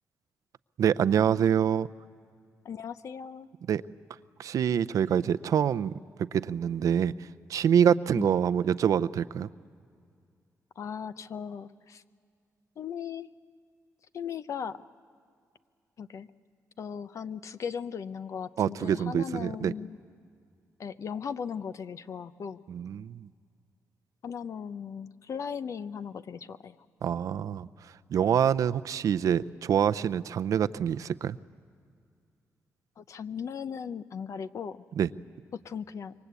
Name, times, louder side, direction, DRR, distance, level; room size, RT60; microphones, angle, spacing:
voice 1, 0.8-1.9 3.7-3.8 4.4-6.0 6.3-7.1 7.5-9.5 18.6-19.7 22.7-23.3 27.0-27.7 28.1-31.4 35.0-35.1, right 8 dB, 75° right, 13 dB, 0.6 m, -25 dB
voice 2, 2.6-3.5 8.1-8.4 10.8-12.0 12.8-13.3 14.1-14.9 16.0-16.3 16.8-20.0 20.8-22.6 24.2-26.8 33.0-34.8 35.5-36.1, left 7 dB, 60° left, 13 dB, 0.8 m, -37 dB
26.5 x 23.5 x 8.2 m, 2.3 s
cardioid pair, 85°, 6 cm